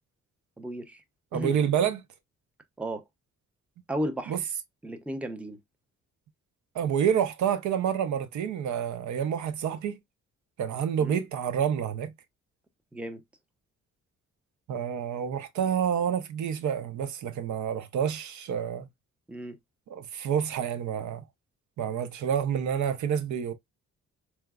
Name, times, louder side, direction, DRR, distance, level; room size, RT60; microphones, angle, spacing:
voice 1, 0.6-1.0 1.3-1.6 2.8-3.0 3.9-4.4 4.8-5.6 11.0-11.2 12.9-13.2 19.3-19.6, right 1 dB, 5° right, 0.5 m, -34 dB
voice 2, 1.3-2.0 4.3-4.4 6.7-10.0 10.6-12.1 14.7-18.9 19.9-21.2 21.8-23.5, right 8 dB, 75° right, 0.6 m, -28 dB
4.4 x 2.0 x 2.3 m
cardioid pair, 110°, 29 cm